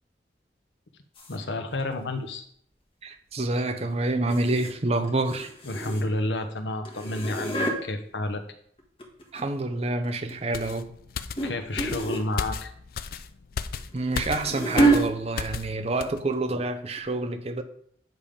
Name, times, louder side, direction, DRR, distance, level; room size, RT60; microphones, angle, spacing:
sound 1, 1.2-1.4 4.3-4.8 5.0-6.3 6.9-7.8 8.8-9.6 10.0-10.4 11.4-11.5 11.8-12.3 13.8-15.0 15.9-16.1 16.3-16.4 17.0-17.1, right 2 dB, 30° left, 1.4 m, -27 dB
voice 1, 1.3-2.4 5.6-8.4 11.4-12.7, left 2 dB, 85° left, 0.9 m, -30 dB
voice 2, 3.0-5.5 9.3-10.9 13.9-17.6, right 2 dB, 35° right, 0.7 m, -27 dB
sound 2, 10.5-15.7 16.0-16.2, left 6 dB, 55° left, 0.4 m, -34 dB
9.2 x 3.5 x 5.1 m
head